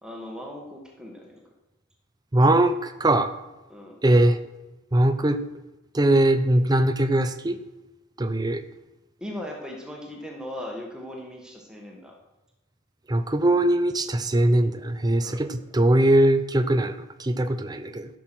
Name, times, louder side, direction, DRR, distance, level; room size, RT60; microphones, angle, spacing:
voice 1, 0.0-1.4 3.7-4.0 9.2-12.2 15.2-15.8, left 1 dB, 5° right, -1 dB, 1.6 m, -38 dB
voice 2, 2.3-3.3 4.0-4.4 4.9-5.4 5.9-7.6 8.2-8.6 13.1-18.1, right 1 dB, 20° right, 10 dB, 0.7 m, -21 dB
14.0 x 6.3 x 6.2 m, 1.0 s
head